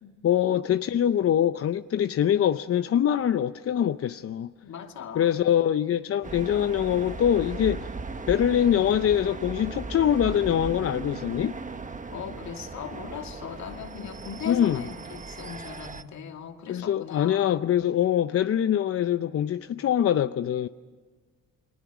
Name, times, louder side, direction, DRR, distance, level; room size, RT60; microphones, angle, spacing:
voice 1, 0.2-4.5 5.1-7.9 8.3-11.6 14.5-14.8 16.7-20.7, left 10 dB, 50° left, 0.6 m, -24 dB
voice 2, 4.6-5.4 12.1-17.6, left 7 dB, 65° left, 2.6 m, -39 dB
sound 1, 6.2-16.0, right 4 dB, 25° right, 1.2 m, -37 dB
29.5 x 22.0 x 6.1 m
cardioid pair, 90°, 30 cm